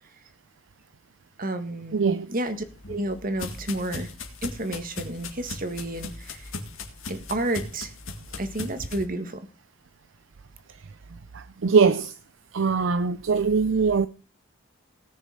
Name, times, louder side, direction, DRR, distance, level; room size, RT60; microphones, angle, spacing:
voice 1, 1.4-2.0 2.3-4.1 4.4-6.5 7.1-7.9 8.4-9.5, right 1 dB, 40° right, 1.6 m, -31 dB
voice 2, 1.9-2.3 11.3-12.1 12.5-14.1, right 5 dB, 60° right, 0.5 m, -22 dB
sound 1, 2.5-9.0, left 3 dB, 70° left, 2.4 m, -38 dB
18.0 x 6.7 x 4.9 m
head